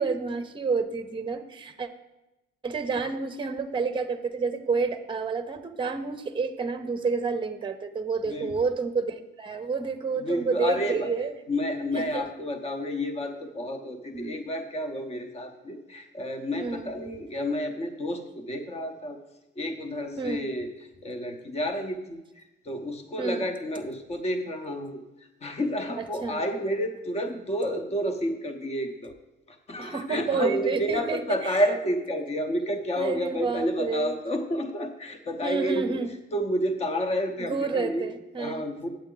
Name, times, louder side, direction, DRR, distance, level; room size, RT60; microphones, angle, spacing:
voice 1, 0.0-1.9 2.6-11.3 11.9-12.2 14.1-14.4 16.6-16.9 20.2-20.4 23.2-23.5 26.2-26.4 29.8-31.2 31.5-31.6 33.0-34.2 35.4-36.1 37.5-38.7, right 4 dB, 25° right, 9 dB, 0.7 m, -29 dB
voice 2, 10.1-11.1 11.5-19.2 19.6-29.1 29.5-36.0 36.3-38.1 38.4-38.9, equal, 30° left, 6 dB, 1.0 m, -30 dB
8.8 x 8.0 x 3.8 m, 0.98 s
cardioid pair, 90°, 20 cm